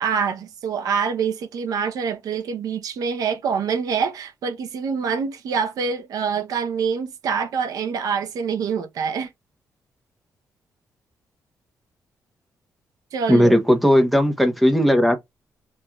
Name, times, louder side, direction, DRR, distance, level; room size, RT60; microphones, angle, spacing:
voice 1, 0.0-9.3 13.1-13.6, right 6 dB, 75° right, 0.6 m, -25 dB
voice 2, 13.3-15.2, equal, ahead, 0.8 m, -16 dB
6.0 x 2.5 x 2.3 m
cardioid pair, 130°, 6 cm